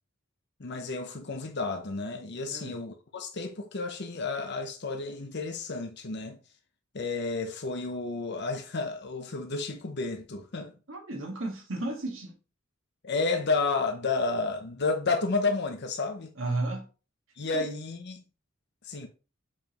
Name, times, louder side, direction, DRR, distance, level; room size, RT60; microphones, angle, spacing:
voice 1, 0.6-6.4 6.9-10.7 13.0-16.3 17.4-18.2 18.8-19.1, left 3 dB, 55° left, 0.8 m, -31 dB
voice 2, 10.9-12.4 16.4-16.9 17.5-17.7, right 2 dB, 70° right, 1.7 m, -33 dB
7.3 x 5.1 x 3.0 m
head